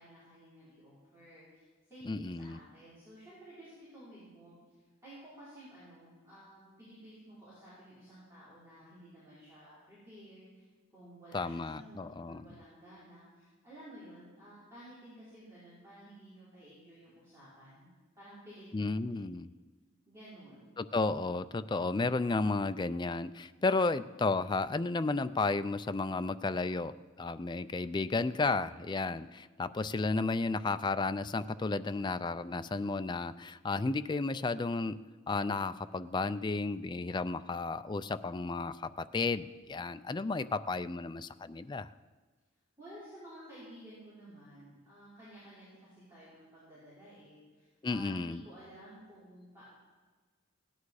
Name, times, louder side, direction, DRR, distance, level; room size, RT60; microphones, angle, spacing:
voice 1, 0.0-10.6 10.9-17.9 18.1-19.2 20.0-20.7 42.8-49.6, equal, 15° right, -12 dB, 5.1 m, -53 dB
voice 2, 2.1-2.6 11.3-12.5 18.7-19.5 20.8-35.0 35.3-41.9 47.8-48.4, left 3 dB, 20° left, 12 dB, 0.4 m, -33 dB
17.5 x 10.5 x 4.8 m, 1.4 s
head